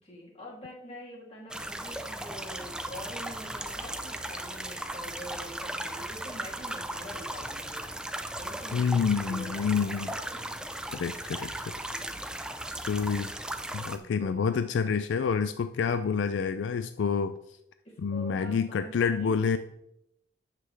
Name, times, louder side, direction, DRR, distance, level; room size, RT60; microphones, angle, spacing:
voice 1, 0.0-10.8 11.9-12.6 13.9-14.4 17.8-19.6, equal, 35° left, -4 dB, 2.7 m, -46 dB
sound 1, 1.5-14.0, right 1 dB, 5° right, 0.5 m, -37 dB
voice 2, 8.7-10.1 10.9-11.5 12.8-13.3 13.7-17.3 18.0-19.6, left 6 dB, 80° left, 11 dB, 0.3 m, -28 dB
9.4 x 7.6 x 3.3 m, 0.81 s
head